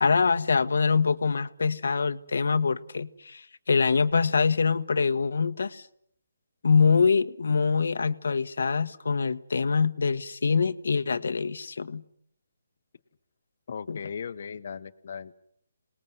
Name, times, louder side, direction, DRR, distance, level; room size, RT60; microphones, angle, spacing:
voice 1, 0.0-5.8 6.6-12.0 13.9-14.0, left 5 dB, 75° left, 1.2 m, -24 dB
voice 2, 13.7-15.3, left 6 dB, 55° left, 1.2 m, -37 dB
26.5 x 20.0 x 7.9 m
hypercardioid pair, 155°, 0 cm